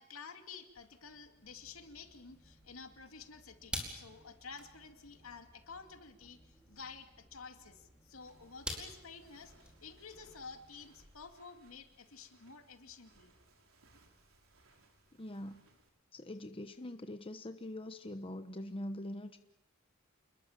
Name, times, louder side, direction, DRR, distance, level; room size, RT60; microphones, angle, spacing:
voice 1, 0.0-13.3, left 5 dB, 75° left, 6 dB, 2.5 m, -51 dB
sound 1, 0.7-11.2, equal, 5° right, 4.8 m, -50 dB
Walk footsteps, 8.2-15.9, right 2 dB, 75° right, 4.0 m, -66 dB
voice 2, 15.1-15.7 16.1-19.4, left 1 dB, 25° left, 8 dB, 1.0 m, -43 dB
28.5 x 21.5 x 7.4 m, 0.89 s
head